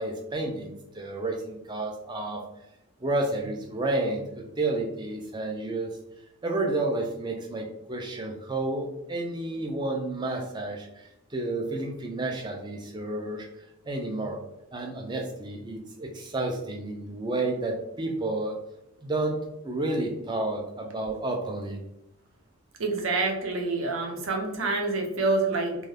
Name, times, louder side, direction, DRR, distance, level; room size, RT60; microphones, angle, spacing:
voice 1, 0.0-2.4 3.0-6.0 6.4-13.5 13.8-14.4 14.7-18.6 19.0-21.8, right 2 dB, 20° right, 2 dB, 0.3 m, -31 dB
voice 2, 22.8-25.8, right 3 dB, 70° right, 2 dB, 0.6 m, -27 dB
2.3 x 2.3 x 3.2 m, 0.85 s
head